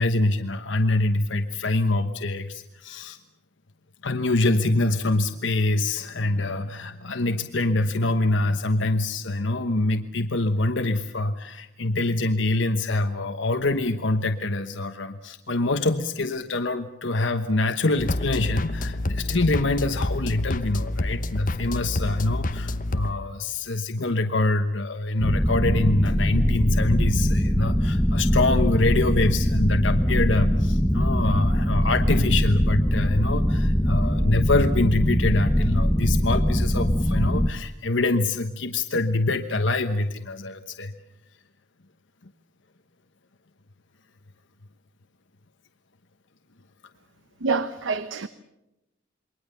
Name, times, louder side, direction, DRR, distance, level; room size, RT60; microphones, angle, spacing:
voice 1, 0.0-3.2 4.0-40.9, left 2 dB, 75° left, 1.2 m, -25 dB
sound 1, 18.0-23.1, left 1 dB, 40° left, 1.0 m, -28 dB
sound 2, 25.2-37.5, equal, 10° left, 1.0 m, -22 dB
voice 2, 47.4-48.3, right 4 dB, 80° right, 0.9 m, -26 dB
28.0 x 22.0 x 6.9 m
head